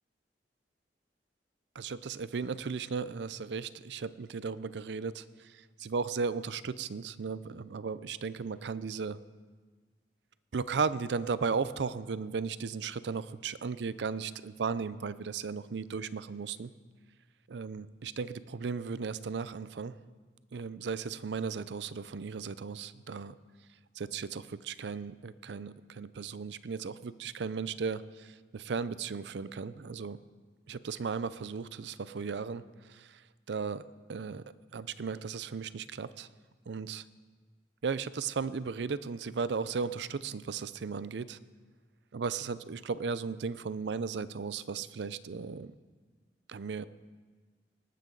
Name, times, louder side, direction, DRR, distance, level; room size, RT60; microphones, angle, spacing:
voice 1, 1.7-9.2 10.5-16.7 17.5-20.0 20.5-23.4 24.0-30.2 30.7-33.8 34.1-36.3 36.7-37.0 37.8-41.4 42.1-45.7 46.5-46.9, right 5 dB, 75° right, 16 dB, 0.5 m, -36 dB
19.5 x 12.0 x 3.9 m, 1.4 s
head